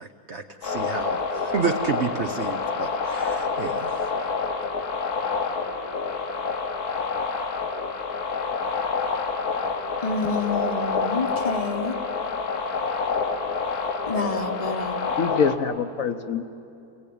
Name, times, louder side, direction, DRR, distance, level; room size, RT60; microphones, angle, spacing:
voice 1, 0.0-3.9, right 5 dB, 55° right, 5 dB, 1.0 m, -30 dB
sound 1, 0.6-15.6, left 4 dB, 85° left, 1.8 m, -28 dB
voice 2, 10.0-11.9 14.1-15.2, left 3 dB, 30° left, 6 dB, 0.9 m, -28 dB
voice 3, 15.2-16.4, left 6 dB, 65° left, 8 dB, 1.2 m, -24 dB
28.5 x 19.5 x 8.6 m, 2.7 s
omnidirectional pair, 1.6 m